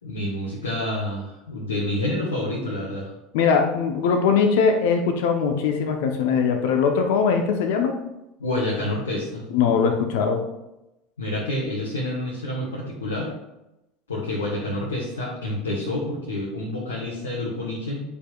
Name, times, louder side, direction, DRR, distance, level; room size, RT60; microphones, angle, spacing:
voice 1, 0.0-3.1 8.4-9.4 11.2-13.3 14.1-18.0, left 1 dB, 80° left, -4 dB, 1.4 m, -28 dB
voice 2, 3.3-8.0 9.5-10.5, left 6 dB, 60° left, 5 dB, 0.8 m, -21 dB
10.0 x 5.2 x 2.4 m, 0.93 s
figure-of-eight pair, 75°, 0 cm